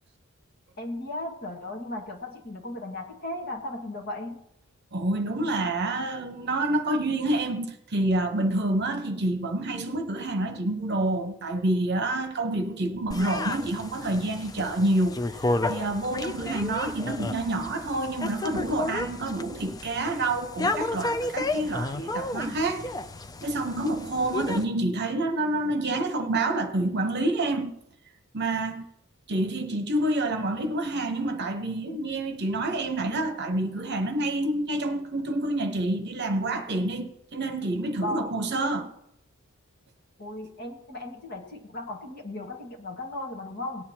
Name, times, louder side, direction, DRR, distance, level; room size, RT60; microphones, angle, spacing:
voice 1, 0.8-4.4 37.9-38.3 40.2-43.8, left 1 dB, 45° left, 1.8 m, -36 dB
voice 2, 4.9-15.2 15.6-22.9 23.4-27.7 28.3-28.8 29.3-38.9, right 2 dB, 50° right, 1.0 m, -28 dB
sound 1, 13.1-24.6, left 2 dB, 15° left, 0.3 m, -32 dB
18.0 x 9.8 x 2.9 m
head